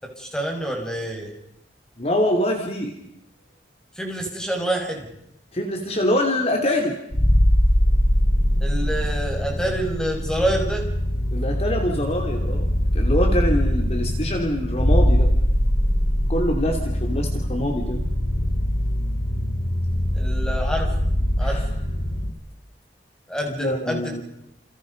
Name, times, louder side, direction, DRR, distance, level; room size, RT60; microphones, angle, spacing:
voice 1, 0.0-1.3 4.0-5.1 8.6-10.9 20.1-20.9 21.4-21.6 23.3-24.2, right 1 dB, 5° left, 2 dB, 6.0 m, -27 dB
voice 2, 2.0-3.0 5.5-7.0 11.3-15.3 16.3-18.0 21.4-21.7 23.5-24.2, left 1 dB, 35° left, 3 dB, 3.1 m, -24 dB
sound 1, 7.1-22.3, equal, 70° left, 3.0 m, -22 dB
29.5 x 29.0 x 5.4 m, 0.79 s
head